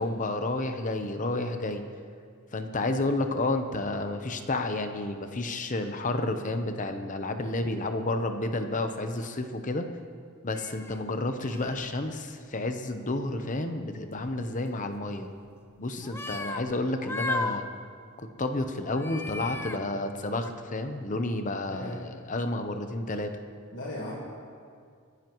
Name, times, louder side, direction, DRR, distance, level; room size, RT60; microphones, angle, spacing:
voice 1, 0.0-1.8 2.5-9.9 10.4-15.3 15.8-17.6 18.2-23.3, left 2 dB, 40° left, 7 dB, 0.8 m, -31 dB
sound 1, 10.5-11.0 11.4-12.0 14.2-14.7 16.0-16.7 17.0-17.8 19.0-19.8 20.3-20.5, left 2 dB, 10° left, 0.5 m, -35 dB
voice 2, 21.7-22.1 23.7-24.2, left 1 dB, 55° left, -4 dB, 1.6 m, -37 dB
25.0 x 10.0 x 3.1 m, 2.2 s
head